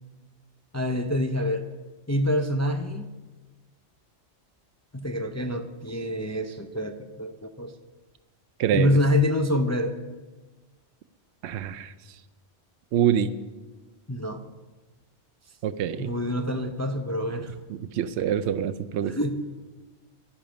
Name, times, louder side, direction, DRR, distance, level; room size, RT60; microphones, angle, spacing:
voice 1, 0.7-1.7 2.1-3.1 4.9-7.7 8.7-9.9 14.1-14.4 16.0-17.5 19.1-19.3, left 1 dB, 20° left, 5 dB, 0.5 m, -26 dB
voice 2, 8.6-9.0 11.4-12.2 12.9-13.3 15.6-16.1 17.7-19.1, right 9 dB, 80° right, 10 dB, 0.9 m, -26 dB
12.0 x 10.5 x 5.2 m, 1.2 s
omnidirectional pair, 1.1 m